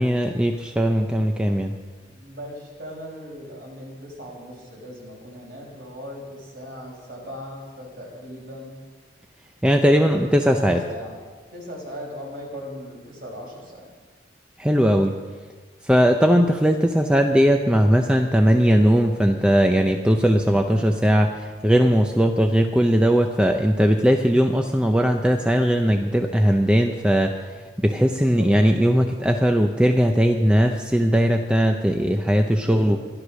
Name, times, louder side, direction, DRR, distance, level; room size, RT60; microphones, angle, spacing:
voice 1, 0.0-1.8 9.6-10.8 14.6-15.2 15.8-33.0, equal, 5° right, 3 dB, 0.6 m, -19 dB
voice 2, 2.1-8.8 10.4-11.1 11.5-13.9 27.9-28.5 32.5-33.0, equal, 50° right, -2 dB, 5.1 m, -38 dB
15.0 x 11.5 x 6.3 m, 1.4 s
head